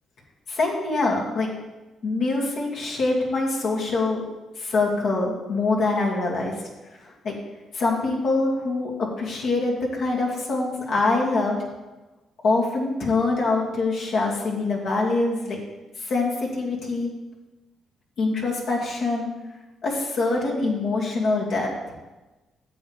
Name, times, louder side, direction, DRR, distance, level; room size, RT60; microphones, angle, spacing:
voice 1, 0.5-1.5 2.0-4.2 4.6-6.6 7.0-7.3 7.7-11.6 12.4-15.6 16.0-17.1 18.2-19.3 19.8-21.9, left 3 dB, 65° left, -4 dB, 2.6 m, -24 dB
13.5 x 7.4 x 3.5 m, 1.1 s
cardioid pair, 90°, 0 cm